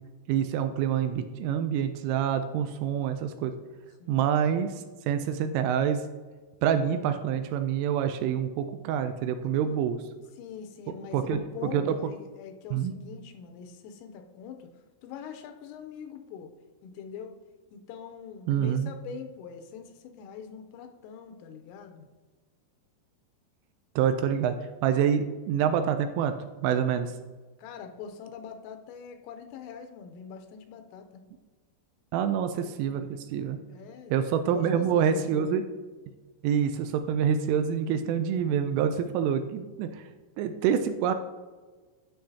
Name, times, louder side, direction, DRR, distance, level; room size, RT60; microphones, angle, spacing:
voice 1, 0.3-3.5 4.1-6.0 6.6-10.0 11.1-11.4 11.7-11.9 12.7-12.9 18.5-18.9 24.0-24.6 24.8-26.3 26.6-27.1 32.1-33.6 34.1-35.6 36.4-40.1 40.4-41.1, right 8 dB, 85° right, 8 dB, 2.9 m, -26 dB
voice 2, 4.0-4.3 9.3-9.9 10.4-14.7 15.0-16.5 16.8-17.3 17.7-22.1 27.6-31.2 33.7-35.5, left 7 dB, 85° left, 5 dB, 3.2 m, -43 dB
11.5 x 6.3 x 2.8 m, 1.3 s
omnidirectional pair, 5.9 m